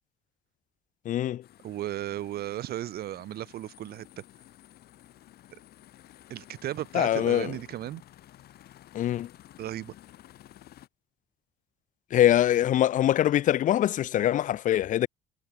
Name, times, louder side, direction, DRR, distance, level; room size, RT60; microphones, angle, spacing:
voice 1, 1.1-1.4 6.9-7.5 8.9-9.3 12.1-15.1, left 12 dB, 50° left, 0.5 m, -23 dB
sound 1, 1.4-10.9, left 13 dB, 70° left, 6.3 m, -53 dB
voice 2, 1.6-4.2 6.3-8.0 9.6-9.9, right 13 dB, 65° right, 3.0 m, -35 dB
cardioid pair, 110°, 17 cm